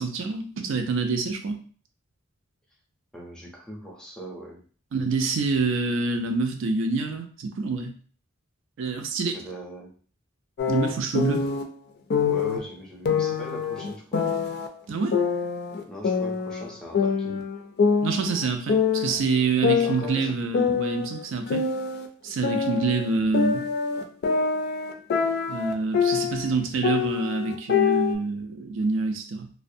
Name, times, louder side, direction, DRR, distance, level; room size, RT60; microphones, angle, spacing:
voice 1, 0.0-1.6 4.9-7.9 8.8-9.4 10.7-11.4 14.9-15.1 18.0-21.6 22.2-23.7 25.5-29.5, right 4 dB, 65° right, 6 dB, 0.4 m, -26 dB
voice 2, 3.1-4.6 9.2-9.9 12.2-14.2 15.9-17.4 19.7-20.4, equal, 5° left, -2 dB, 0.6 m, -40 dB
sound 1, 10.6-11.6 12.1-12.6 13.1-14.7 15.1-16.7 16.9-18.4 18.7-19.2 19.6-22.1 22.4-26.5 26.8-28.2, left 6 dB, 55° left, 0.3 m, -25 dB
2.5 x 2.1 x 2.6 m, 0.43 s
head